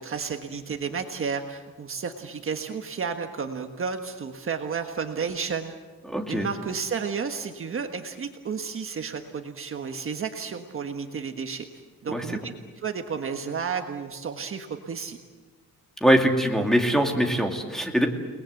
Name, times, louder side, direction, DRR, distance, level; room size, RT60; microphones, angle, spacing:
voice 1, 0.0-5.7 6.3-11.7 12.0-12.5 12.8-15.2, right 6 dB, 40° right, 5 dB, 1.4 m, -32 dB
voice 2, 6.1-6.5 12.1-12.2 16.0-18.1, equal, ahead, 3 dB, 2.5 m, -22 dB
29.5 x 20.0 x 8.0 m, 1.4 s
cardioid pair, 150°, 33 cm